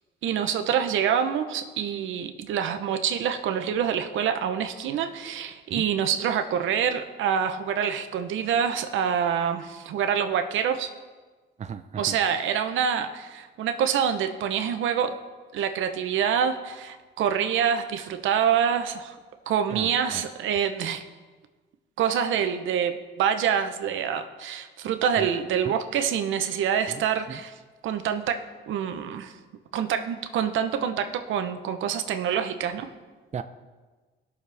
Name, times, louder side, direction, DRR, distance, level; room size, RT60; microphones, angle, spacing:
voice 1, 0.2-10.9 12.0-15.2 15.5-19.2 19.5-21.0 22.0-27.5 27.8-29.4 29.7-32.9, right 8 dB, 80° right, 7 dB, 0.9 m, -26 dB
voice 2, 11.6-12.2 19.7-20.2 25.2-25.3 25.6-25.8 26.9-27.0 27.3-27.4 33.3-33.4, right 7 dB, 35° right, 9 dB, 0.6 m, -35 dB
18.5 x 6.6 x 3.4 m, 1.3 s
cardioid pair, 90°, 20 cm